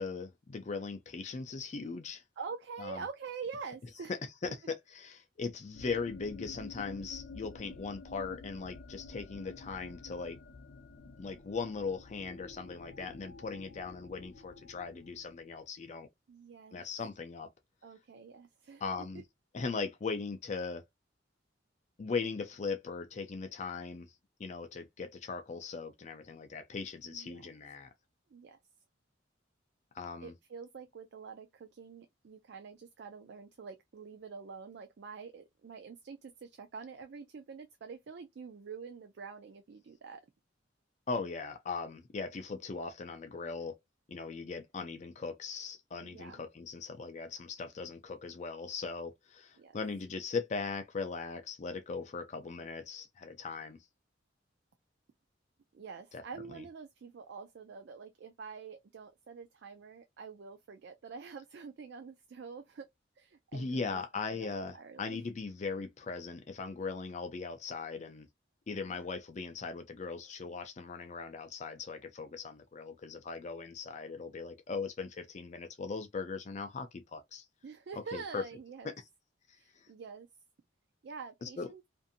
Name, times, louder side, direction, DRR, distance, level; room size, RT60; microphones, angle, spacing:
voice 1, 0.0-2.2 2.8-3.0 4.1-10.4 11.2-16.1 16.7-17.5 18.8-19.2 19.5-20.9 22.0-24.1 24.4-27.9 29.9-30.3 41.1-43.8 44.1-53.8 56.1-56.2 56.5-56.6 63.5-68.3 68.7-77.5 78.1-78.4 78.8-78.9 79.8-79.9 81.4-81.7, left 4 dB, 40° left, 0.4 m, -39 dB
voice 2, 2.4-4.2 16.3-16.8 17.8-19.1 27.0-27.5 28.3-28.6 30.2-40.2 46.0-46.4 49.6-49.8 55.7-62.9 63.2-64.0 64.3-64.5 64.8-65.2 68.8-69.0 77.6-78.9 79.6-80.3 81.0-81.8, right 5 dB, 60° right, 0.4 m, -46 dB
sound 1, 5.7-15.6, left 3 dB, 90° left, 0.6 m, -50 dB
2.6 x 2.5 x 2.5 m
head